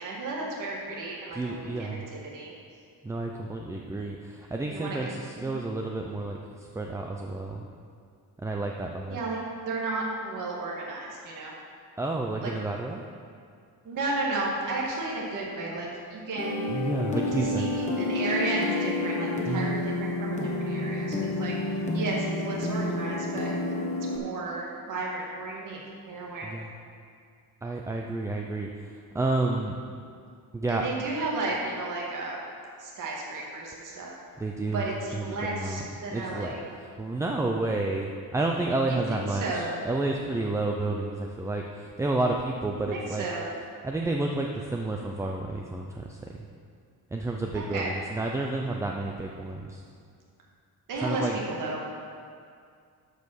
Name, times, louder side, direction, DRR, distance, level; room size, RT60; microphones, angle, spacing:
voice 1, 0.0-2.5 4.7-5.1 5.4-5.6 9.1-9.4 9.7-11.5 12.4-12.5 13.8-16.8 17.3-21.5 21.9-23.5 24.1-25.8 26.1-26.5 30.7-32.4 32.8-34.1 34.7-36.6 38.9-39.8 42.8-43.5 47.5-47.9 50.9-51.8, right 2 dB, 55° right, -3 dB, 1.9 m, -33 dB
voice 2, 1.3-2.0 3.0-7.7 8.4-9.2 12.0-13.0 16.7-17.7 19.5-19.8 26.4-26.7 27.6-29.8 30.5-30.8 34.4-34.8 35.1-35.8 36.1-43.3 43.8-46.2 47.1-49.8 50.9-51.4, right 2 dB, 10° right, 1 dB, 0.4 m, -30 dB
sound 1, 16.4-24.2, left 2 dB, 20° left, 1.1 m, -29 dB
12.0 x 5.3 x 6.3 m, 2.3 s
cardioid pair, 160°, 37 cm